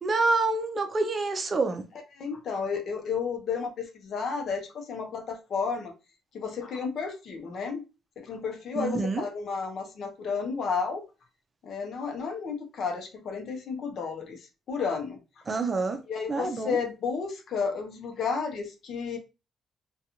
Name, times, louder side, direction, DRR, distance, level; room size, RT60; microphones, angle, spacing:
voice 1, 0.0-1.8 8.7-9.3 15.5-16.0 16.3-16.8, right 3 dB, 35° right, 0.5 m, -27 dB
voice 2, 2.2-5.9 6.3-7.8 8.2-11.0 11.6-15.2 16.1-19.2, left 5 dB, 65° left, 0.7 m, -32 dB
2.4 x 2.3 x 2.8 m
cardioid pair, 90°, 0 cm